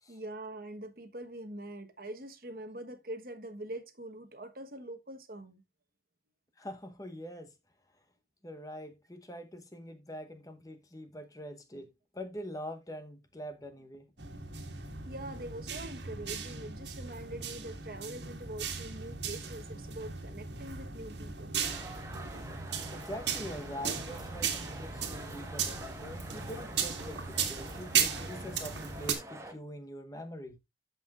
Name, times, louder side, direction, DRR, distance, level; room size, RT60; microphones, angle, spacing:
voice 1, 0.1-5.6 15.0-21.6, right 1 dB, 50° right, 1.2 m, -44 dB
voice 2, 6.6-7.5 8.4-14.1 22.9-30.6, equal, 20° left, 0.9 m, -44 dB
sound 1, 14.2-29.1, right 6 dB, 75° right, 1.9 m, -36 dB
sound 2, 21.6-29.5, right 1 dB, 15° right, 1.2 m, -47 dB
13.5 x 5.5 x 2.4 m
head